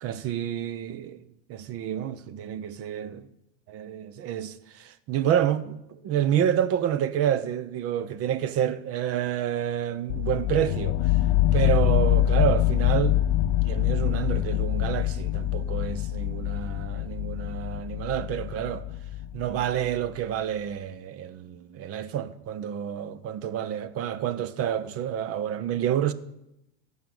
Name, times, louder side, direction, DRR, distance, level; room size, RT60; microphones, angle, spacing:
voice 1, 0.0-1.2 1.5-3.3 3.7-11.1 11.5-13.2 13.6-18.8 19.3-26.1, right 10 dB, 40° right, 0.9 m, -29 dB
sound 1, 10.1-19.9, left 14 dB, 60° left, 0.6 m, -25 dB
15.0 x 5.6 x 9.2 m
supercardioid pair, 115°, 37 cm